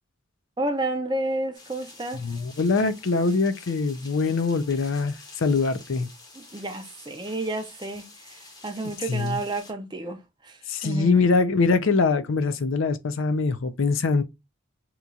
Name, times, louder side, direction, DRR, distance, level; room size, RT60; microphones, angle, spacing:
voice 1, 0.6-2.2 6.4-11.3, right 2 dB, 20° right, 0.4 m, -31 dB
sound 1, 1.5-9.7, left 3 dB, 20° left, 0.7 m, -48 dB
voice 2, 2.1-6.1 9.1-9.4 10.7-14.2, left 4 dB, 70° left, 0.5 m, -23 dB
2.9 x 2.3 x 3.8 m
head